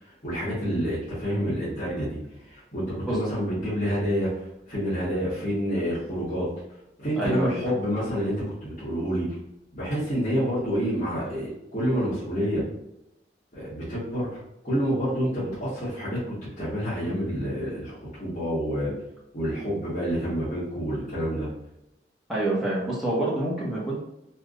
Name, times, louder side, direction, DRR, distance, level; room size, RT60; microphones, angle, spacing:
voice 1, 0.0-6.5 7.0-9.2 9.7-12.6 13.5-18.9 19.3-21.5, equal, 40° left, -12 dB, 1.4 m, -28 dB
voice 2, 7.2-7.6 22.3-24.0, right 1 dB, ahead, -8 dB, 1.0 m, -27 dB
3.4 x 3.0 x 2.5 m, 0.85 s
head